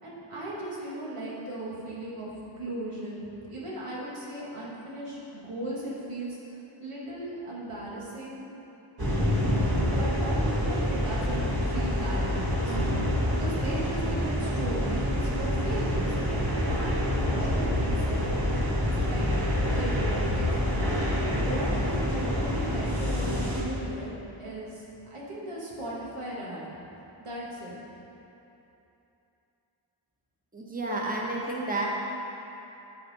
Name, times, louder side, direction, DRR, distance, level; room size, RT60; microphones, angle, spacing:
voice 1, 0.0-2.3 2.6-8.4 9.8-12.9 13.3-16.2 16.5-18.2 18.5-20.5 21.0-24.8 25.1-26.6 27.2-27.8, right 1 dB, 85° right, -6 dB, 1.9 m, -37 dB
sound 1, 9.0-23.6, equal, 45° right, 1.7 m, -27 dB
voice 2, 30.5-31.9, right 2 dB, 15° right, -3 dB, 1.1 m, -31 dB
12.5 x 4.2 x 4.2 m, 3.0 s
wide cardioid pair, 70°, 50 cm